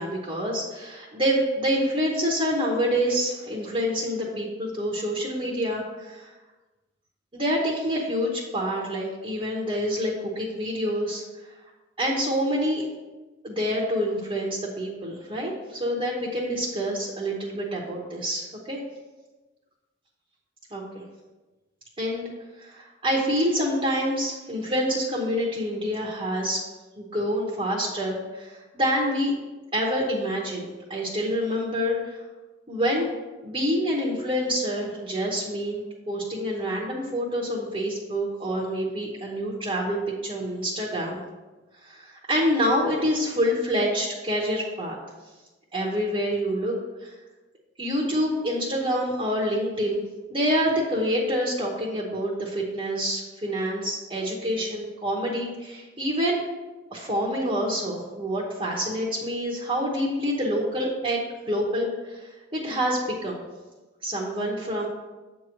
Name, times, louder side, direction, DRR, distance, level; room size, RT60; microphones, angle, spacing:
voice 1, 0.0-6.3 7.3-11.2 12.0-12.8 13.4-18.8 20.7-21.0 22.0-22.3 22.6-26.6 27.0-29.3 29.7-32.2 32.7-33.1 33.4-35.8 36.1-41.2 41.8-45.0 45.7-46.7 47.0-47.1 47.8-50.0 50.3-56.4 56.9-63.4 64.0-64.9, equal, 25° right, -3 dB, 1.0 m, -27 dB
8.2 x 3.0 x 6.3 m, 1.2 s
head